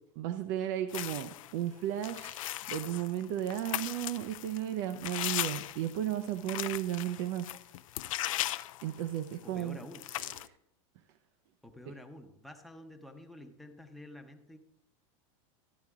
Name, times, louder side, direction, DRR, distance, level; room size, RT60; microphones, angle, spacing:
voice 1, 0.2-7.5 8.8-9.8 10.1-10.6, right 11 dB, 50° right, 8 dB, 0.5 m, -34 dB
sound 1, 0.9-1.5 2.0-9.3 9.6-9.7 9.9-10.5, left 15 dB, 85° left, 0.5 m, -38 dB
voice 2, 9.4-10.0 11.6-14.6, left 1 dB, ahead, 3 dB, 0.7 m, -49 dB
12.5 x 8.7 x 3.6 m, 0.80 s
supercardioid pair, 155°, 17 cm